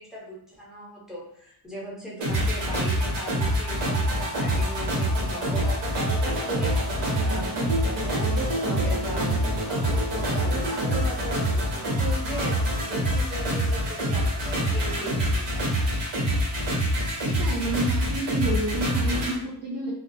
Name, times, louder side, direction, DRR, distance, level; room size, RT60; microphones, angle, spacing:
voice 1, 0.0-6.7 7.2-7.5 7.8-9.4 9.6-16.0, right 1 dB, ahead, -6 dB, 0.6 m, -38 dB
sound 1, 2.2-19.3, equal, 80° right, 1.0 m, -25 dB
voice 2, 17.2-19.9, right 1 dB, 65° right, -4 dB, 0.6 m, -29 dB
2.3 x 2.1 x 2.5 m, 0.66 s
wide cardioid pair, 165°, 42 cm